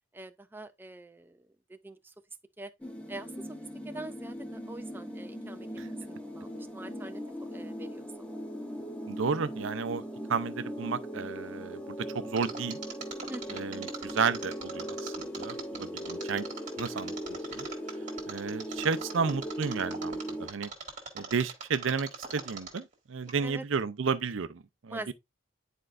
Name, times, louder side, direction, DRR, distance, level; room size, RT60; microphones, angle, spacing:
voice 1, 0.1-2.1 2.6-2.7 3.1-3.5 3.8-7.2 7.5-8.3 13.3-13.7 23.4-23.6 24.9-25.1, right 2 dB, 10° right, 0.3 m, -44 dB
sound 1, 2.8-20.5, equal, 5° left, 0.8 m, -39 dB
voice 2, 9.1-10.0 10.3-12.8 13.5-16.4 16.8-17.7 18.3-20.7 21.1-25.0, right 5 dB, 70° right, 0.5 m, -32 dB
Mechanisms, 12.4-22.9 23.3-23.4, right 5 dB, 35° right, 1.8 m, -41 dB
10.0 x 4.5 x 2.5 m
head